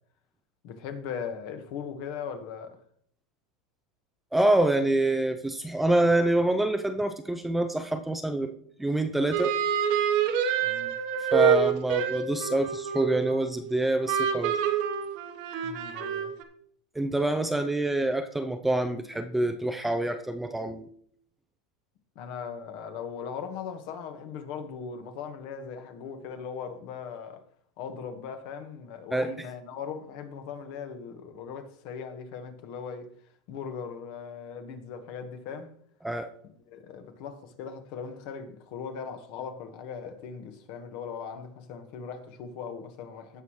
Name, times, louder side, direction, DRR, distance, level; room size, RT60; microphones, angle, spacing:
voice 1, 0.6-2.8 10.6-10.9 15.6-16.3 22.1-27.4 27.8-33.1 33.5-35.7 36.7-43.4, left 6 dB, 55° left, 1.5 m, -39 dB
voice 2, 4.3-9.5 11.3-14.6 16.9-20.9 29.1-29.3 36.0-36.3, right 1 dB, 5° right, 0.6 m, -26 dB
sound 1, 9.3-13.7 14.1-16.4, right 8 dB, 55° right, 1.2 m, -27 dB
16.5 x 5.7 x 3.2 m
supercardioid pair, 140°, 3 cm